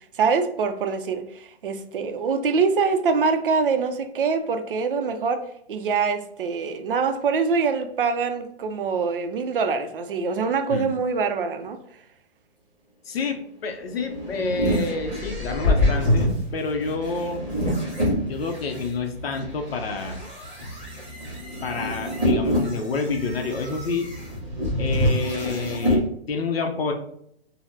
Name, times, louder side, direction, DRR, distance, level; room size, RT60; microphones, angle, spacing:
voice 1, 0.0-11.8, right 5 dB, 55° right, 0.4 m, -24 dB
voice 2, 13.1-17.4 18.3-20.2 21.6-24.1 24.8-26.9, left 4 dB, 65° left, 0.6 m, -28 dB
sound 1, 13.8-18.8 19.4-26.0, left 1 dB, 10° right, 0.6 m, -26 dB
Bass guitar, 15.6-25.5, right 1 dB, 10° left, 1.2 m, -41 dB
3.9 x 2.0 x 2.7 m
hypercardioid pair, 175°, 32 cm